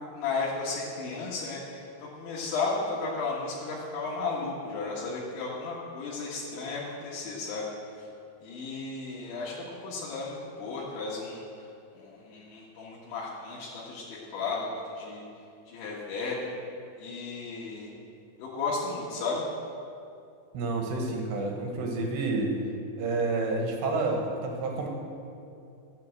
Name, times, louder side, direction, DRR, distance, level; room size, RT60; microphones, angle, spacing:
voice 1, 0.0-7.7 8.0-8.1 8.4-11.4 11.9-14.7 15.0-15.2 15.7-16.5 17.0-17.9 18.4-19.5, left 4 dB, 80° left, -6 dB, 3.9 m, -34 dB
voice 2, 20.5-22.6 23.0-24.9, right 3 dB, 75° right, 1 dB, 3.7 m, -29 dB
12.5 x 8.3 x 8.0 m, 2.6 s
omnidirectional pair, 5.2 m